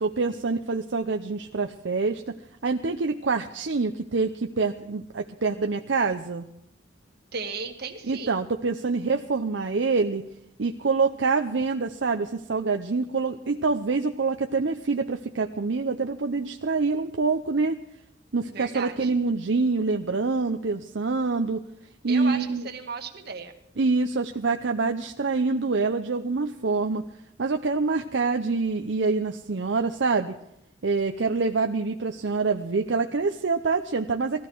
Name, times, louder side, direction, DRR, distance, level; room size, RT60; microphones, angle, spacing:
voice 1, 0.0-2.3 2.6-6.5 8.1-10.2 10.6-17.8 18.3-21.6 22.0-22.6 23.8-27.0 27.4-30.3 30.8-34.5, right 4 dB, 75° right, 5 dB, 0.7 m, -26 dB
voice 2, 7.3-8.4 18.5-19.2 22.1-23.5, right 4 dB, 60° right, 4 dB, 1.7 m, -35 dB
19.0 x 14.5 x 4.6 m, 0.81 s
head